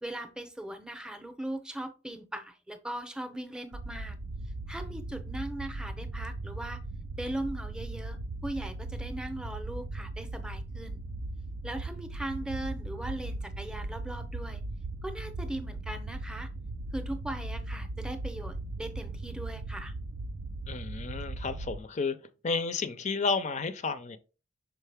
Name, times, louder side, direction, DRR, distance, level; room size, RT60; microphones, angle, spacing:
voice 1, 0.0-4.2 4.7-6.8 7.2-11.0 11.6-14.6 15.0-16.5 16.9-19.9, right 1 dB, 5° right, 0.7 m, -39 dB
sound 1, 3.7-21.8, right 2 dB, 80° right, 0.5 m, -38 dB
voice 2, 20.7-22.2 22.4-24.2, left 4 dB, 40° left, 0.5 m, -31 dB
6.1 x 4.6 x 3.4 m
head